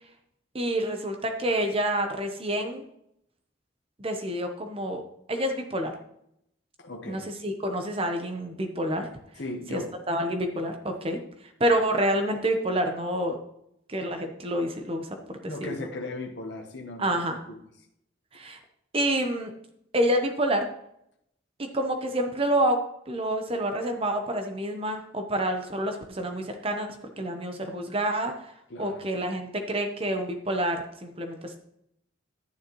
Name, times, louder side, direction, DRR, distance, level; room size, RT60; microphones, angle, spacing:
voice 1, 0.5-2.8 4.0-5.0 5.3-5.9 7.1-9.1 9.7-9.8 10.1-11.2 11.6-13.4 13.9-15.8 17.0-17.4 18.3-18.6 18.9-19.5 19.9-20.7 21.6-26.9 27.2-28.5 28.8-31.6, right 1 dB, 30° right, 5 dB, 0.9 m, -28 dB
voice 2, 6.8-7.3 9.4-9.9 15.4-17.1 17.5-17.6 28.7-29.0, left 2 dB, 60° left, 2 dB, 1.1 m, -37 dB
11.0 x 9.5 x 3.1 m, 0.75 s
head